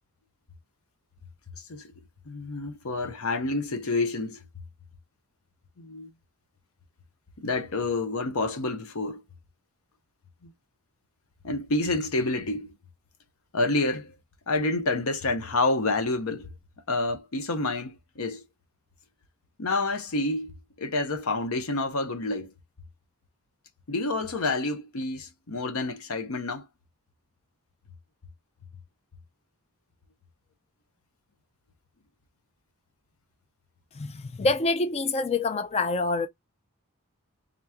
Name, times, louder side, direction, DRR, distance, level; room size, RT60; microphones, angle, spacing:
voice 1, 2.3-4.4 5.8-6.1 7.4-9.2 10.4-10.5 11.4-12.7 13.5-14.2 14.5-16.5 16.9-18.4 19.6-22.5 23.9-26.7, left 2 dB, 70° left, 0.8 m, -28 dB
voice 2, 33.9-36.3, left 3 dB, 30° left, 0.3 m, -26 dB
3.7 x 3.0 x 3.5 m
head